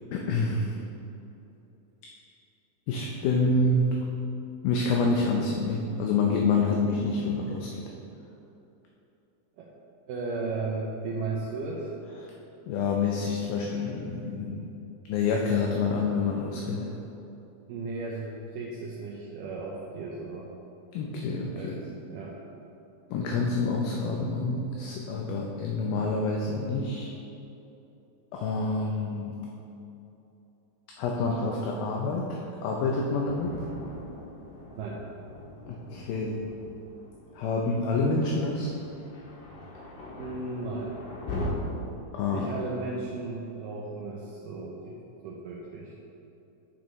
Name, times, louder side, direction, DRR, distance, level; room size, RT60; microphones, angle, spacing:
voice 1, 0.1-0.7 2.9-4.0 4.6-7.8 12.2-12.3 12.7-14.7 15.1-16.9 20.9-21.8 23.1-27.1 28.3-29.5 31.0-33.6 35.7-36.5 37.4-38.7 42.2-42.5, left 3 dB, 80° left, 0 dB, 2.3 m, -27 dB
voice 2, 10.1-11.9 17.7-20.5 21.5-22.4 34.7-35.0 40.2-41.0 42.3-46.0, right 3 dB, 80° right, -3 dB, 1.9 m, -35 dB
Thunder, 32.8-41.5, left 2 dB, 65° left, 2.5 m, -42 dB
10.0 x 6.4 x 3.1 m, 2.9 s
omnidirectional pair, 4.5 m